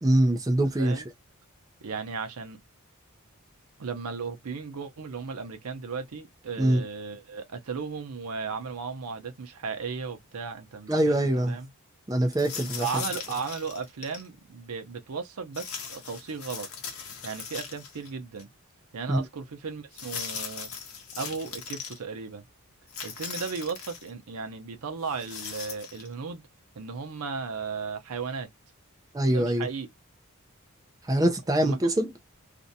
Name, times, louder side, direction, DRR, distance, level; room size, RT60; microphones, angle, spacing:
voice 1, 0.0-1.0 6.6-6.9 10.9-11.6 12.1-13.0 19.1-19.2 29.1-29.7 31.0-32.1, right 1 dB, 15° right, 0.4 m, -24 dB
voice 2, 1.8-2.6 3.8-11.7 12.8-16.7 17.2-18.5 18.9-20.7 21.2-22.5 23.0-26.4 26.8-28.5 29.3-29.9 31.6-31.8, right 5 dB, 85° right, 0.6 m, -35 dB
sound 1, 12.3-14.3 15.5-18.1 18.4-18.5 19.9-22.0 22.9-24.1 25.0-26.1, left 6 dB, 70° left, 0.8 m, -39 dB
2.5 x 2.1 x 2.6 m
head